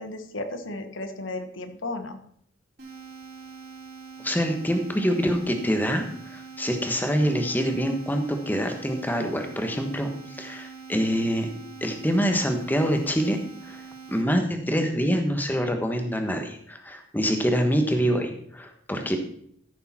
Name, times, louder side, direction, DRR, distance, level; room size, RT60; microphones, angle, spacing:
voice 1, 0.0-2.2, left 2 dB, 75° left, 8 dB, 1.3 m, -34 dB
sound 1, 2.8-14.2, right 5 dB, 50° right, 4.4 m, -43 dB
voice 2, 4.2-11.5 11.8-13.4 13.6-13.8 14.1-19.2, equal, 10° left, 5 dB, 1.3 m, -25 dB
14.0 x 6.7 x 4.3 m, 0.66 s
head